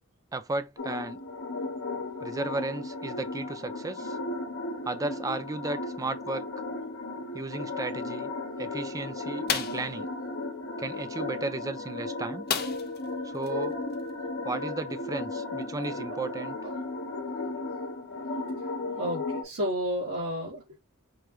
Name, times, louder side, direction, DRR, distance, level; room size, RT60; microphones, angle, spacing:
voice 1, 0.3-1.2 2.2-4.2 4.9-6.5 7.3-8.3 8.6-10.1 10.8-12.4 13.2-13.8 14.5-16.6, right 3 dB, 15° right, 0.4 m, -34 dB
sound 1, 0.8-19.4, left 2 dB, 70° left, 1.4 m, -35 dB
sound 2, 9.5-9.9 12.5-13.1 13.4-13.5 13.9-14.1, left 7 dB, 50° left, 0.7 m, -30 dB
voice 2, 19.0-20.8, equal, 80° right, 1.8 m, -31 dB
4.8 x 2.3 x 3.0 m
head